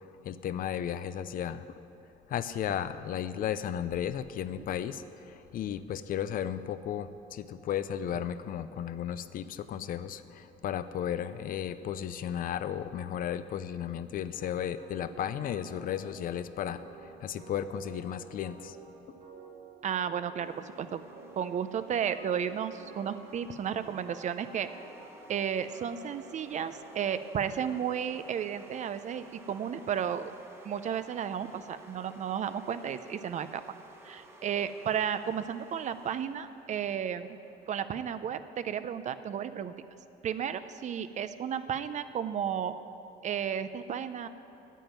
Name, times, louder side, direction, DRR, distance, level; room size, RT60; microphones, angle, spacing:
voice 1, 0.2-1.7 2.3-18.8, left 9 dB, 55° left, 13 dB, 0.6 m, -34 dB
sound 1, 14.8-29.4, right 3 dB, 85° right, 3.5 m, -51 dB
voice 2, 19.8-21.1 21.4-24.7 25.3-30.3 30.6-33.6 34.0-37.4 37.7-39.7 40.2-42.7 43.2-44.3, right 8 dB, 45° right, 12 dB, 0.6 m, -33 dB
sound 2, 20.4-38.2, right 1 dB, 15° right, 1.3 m, -56 dB
9.2 x 8.9 x 9.4 m, 2.7 s
cardioid pair, 110°, 17 cm